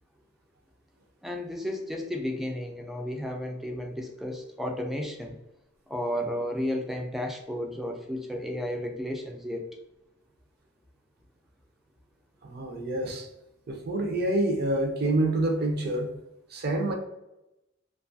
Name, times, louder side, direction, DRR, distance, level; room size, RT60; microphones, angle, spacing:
voice 1, 1.2-5.4 5.9-9.6, left 1 dB, ahead, 2 dB, 0.3 m, -33 dB
voice 2, 12.4-13.3 13.7-16.1 16.5-16.9, right 1 dB, 55° right, 3 dB, 0.5 m, -27 dB
2.6 x 2.3 x 2.6 m, 0.91 s
head